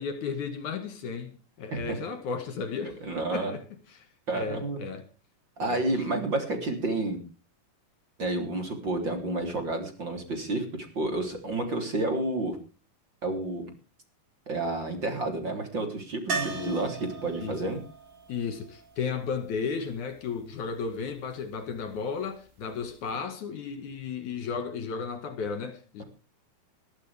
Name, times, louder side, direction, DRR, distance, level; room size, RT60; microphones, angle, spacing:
voice 1, 0.0-3.0 3.3-4.1 4.3-5.0 5.6-6.0 16.5-16.8 17.4-17.6 18.3-26.0, left 5 dB, 60° left, 3.2 m, -34 dB
voice 2, 3.0-3.5 4.3-4.8 5.6-7.2 8.2-10.6 10.9-12.6 13.2-13.6 14.5-17.8, right 2 dB, 30° right, 4.0 m, -30 dB
sound 1, 16.3-20.2 22.8-22.9 23.2-23.3, right 4 dB, 60° right, 4.8 m, -38 dB
21.0 x 13.5 x 3.5 m
omnidirectional pair, 4.0 m